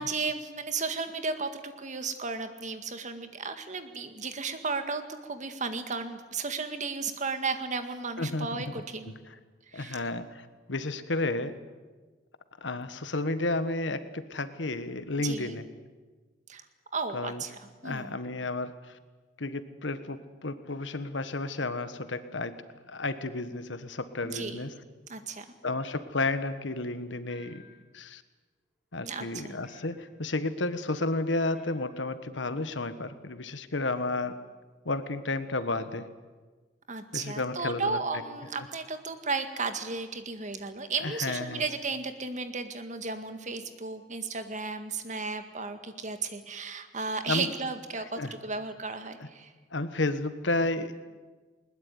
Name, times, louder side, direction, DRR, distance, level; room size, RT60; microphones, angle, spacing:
voice 1, 0.0-9.1 9.7-10.0 15.2-15.6 16.5-16.6 16.9-18.2 24.2-24.7 25.1-25.5 29.0-29.6 36.9-49.5, right 4 dB, 40° right, 8 dB, 1.9 m, -34 dB
voice 2, 8.2-8.8 9.7-11.6 12.6-15.7 17.1-17.4 17.8-19.0 19.4-22.5 22.9-24.7 25.6-27.6 27.9-28.2 28.9-34.4 34.8-36.1 37.1-38.0 41.0-41.6 47.3-47.5 48.2-48.3 49.7-51.0, left 2 dB, 75° left, 12 dB, 1.4 m, -32 dB
sound 1, 27.3-27.8 29.6-30.1 31.5-32.0, left 1 dB, ahead, 5.7 m, -57 dB
21.0 x 20.5 x 9.6 m, 1.4 s
head